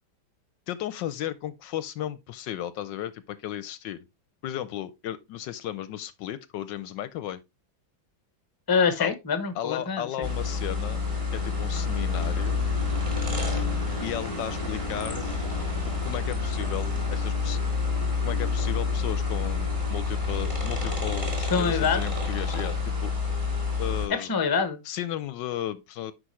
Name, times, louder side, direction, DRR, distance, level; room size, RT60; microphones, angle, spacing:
voice 1, 0.7-4.0 4.4-7.4 9.0-9.2 9.5-11.0 11.3-12.6 14.0-15.3 16.0-17.7 18.2-23.1 23.8-24.4 24.8-26.1, left 11 dB, 75° left, 1.2 m, -35 dB
voice 2, 8.7-10.3 21.4-22.0 24.1-24.8, left 5 dB, 15° left, 0.7 m, -25 dB
sound 1, 10.2-24.1, left 4 dB, 15° right, 2.4 m, -28 dB
10.0 x 5.1 x 3.0 m
omnidirectional pair, 2.1 m